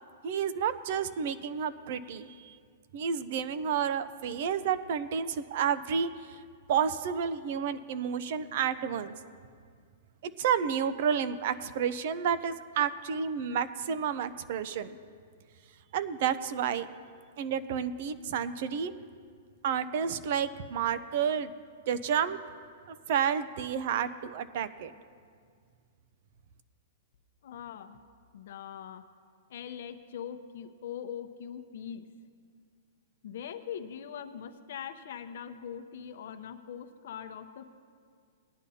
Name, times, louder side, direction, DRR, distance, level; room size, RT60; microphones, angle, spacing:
voice 1, 0.2-2.5 2.9-6.4 6.7-9.1 10.4-15.0 15.9-16.9 17.4-18.9 19.6-21.5 21.9-22.4 22.9-24.9, right 7 dB, 50° right, 13 dB, 0.6 m, -30 dB
voice 2, 27.4-28.0 28.3-29.0 29.5-32.1 33.2-37.6, left 8 dB, 60° left, 9 dB, 0.8 m, -42 dB
20.0 x 9.8 x 2.8 m, 2.1 s
hypercardioid pair, 160°, 0 cm